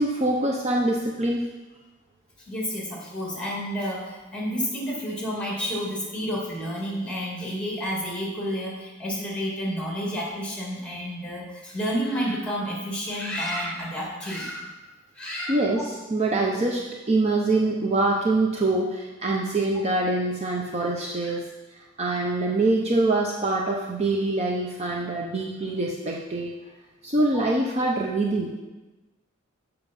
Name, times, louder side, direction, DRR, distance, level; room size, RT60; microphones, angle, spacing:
voice 1, 0.0-1.5 15.5-16.8 17.1-21.4 22.0-26.5 27.0-28.6, right 2 dB, 30° right, -1 dB, 0.7 m, -24 dB
voice 2, 2.5-14.8 15.2-15.8 21.2-21.4, equal, 5° left, -3 dB, 2.2 m, -30 dB
7.4 x 5.8 x 5.3 m, 1.1 s
head